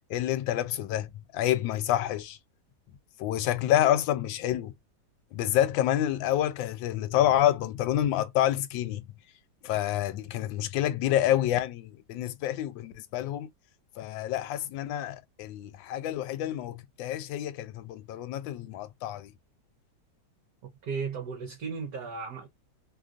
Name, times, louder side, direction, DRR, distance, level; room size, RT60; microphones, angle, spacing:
voice 1, 0.1-2.4 3.2-4.7 5.3-9.1 9.6-13.5 14.0-19.3, left 12 dB, 85° left, 1.3 m, -28 dB
voice 2, 20.8-22.5, right 5 dB, 60° right, 1.4 m, -35 dB
3.3 x 2.5 x 2.3 m
omnidirectional pair, 2.0 m